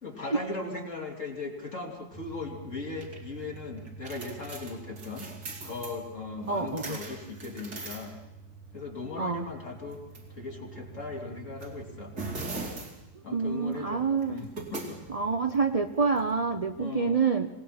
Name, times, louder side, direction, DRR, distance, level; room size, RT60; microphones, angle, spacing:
voice 1, 0.0-5.3 5.6-8.2 8.7-10.0 10.3-12.1 12.6-12.8 13.2-15.0 16.8-17.2, left 3 dB, 50° left, 1 dB, 3.5 m, -38 dB
sound 1, 2.1-16.8, right 3 dB, 75° right, 3.2 m, -43 dB
voice 2, 6.5-7.0 9.2-9.5 13.3-14.4 15.1-17.5, right 5 dB, 35° right, 7 dB, 0.6 m, -27 dB
26.0 x 18.5 x 6.0 m, 0.85 s
omnidirectional pair, 1.7 m